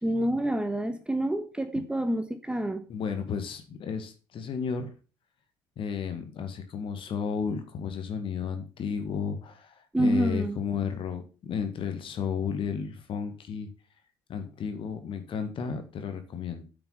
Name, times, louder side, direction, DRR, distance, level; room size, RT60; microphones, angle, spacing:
voice 1, 0.0-2.8 9.9-10.6, right 1 dB, 10° right, 9 dB, 1.3 m, -27 dB
voice 2, 2.9-4.9 5.8-13.7 14.3-16.6, left 6 dB, 45° left, 7 dB, 1.9 m, -33 dB
9.3 x 5.9 x 5.6 m, 0.35 s
figure-of-eight pair, 55°, 12 cm